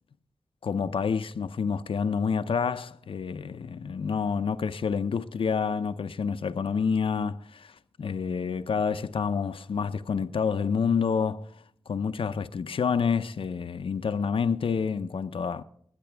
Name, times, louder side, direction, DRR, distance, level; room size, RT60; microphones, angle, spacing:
voice 1, 0.6-11.5 11.9-15.6, left 6 dB, 80° left, 0.6 m, -28 dB
20.5 x 9.9 x 3.4 m
wide cardioid pair, 85°, 9 cm